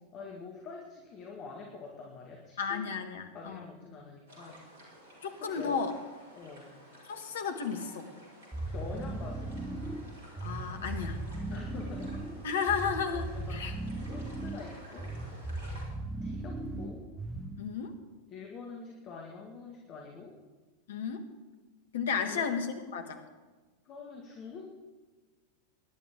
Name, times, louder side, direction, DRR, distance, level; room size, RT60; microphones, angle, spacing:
voice 1, 0.1-2.9 3.3-4.6 5.4-5.8 6.4-6.8 8.7-9.5 11.5-12.1 13.1-15.1 16.2-17.0 18.3-20.4 22.3-22.5 23.9-24.6, left 4 dB, 35° left, 0 dB, 2.0 m, -45 dB
voice 2, 2.6-3.6 5.2-5.9 7.1-8.1 10.4-11.2 12.4-13.7 17.6-17.9 20.9-21.2 21.9-23.2, left 6 dB, 60° left, 7 dB, 1.5 m, -33 dB
sound 1, 4.3-15.8, equal, 60° right, 4.7 m, -53 dB
sound 2, 8.5-17.7, right 2 dB, 10° right, 0.9 m, -38 dB
23.0 x 11.0 x 3.7 m, 1.3 s
figure-of-eight pair, 90°, 0 cm